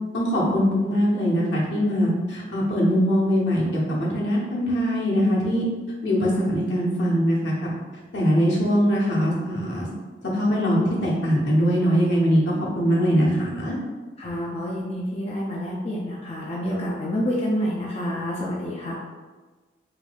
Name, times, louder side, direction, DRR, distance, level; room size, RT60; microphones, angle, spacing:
voice 1, 0.1-5.7 6.0-7.7 8.1-9.9 10.2-13.8, equal, 80° left, -5 dB, 0.9 m, -22 dB
voice 2, 14.2-18.9, equal, 35° left, -4 dB, 0.4 m, -28 dB
3.9 x 2.6 x 2.3 m, 1.3 s
head